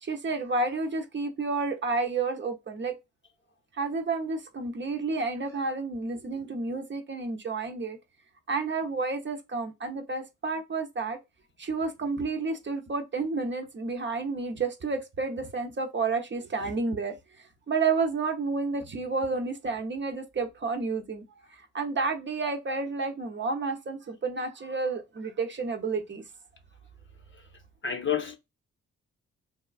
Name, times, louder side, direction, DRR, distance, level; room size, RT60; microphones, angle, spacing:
voice 1, 0.0-3.0 3.8-8.0 8.5-11.2 11.6-17.2 17.7-21.2 21.7-26.2, right 4 dB, 35° right, 0.6 m, -30 dB
voice 2, 27.8-28.4, left 8 dB, 35° left, 0.7 m, -29 dB
2.9 x 2.3 x 2.3 m
hypercardioid pair, 40°, 33 cm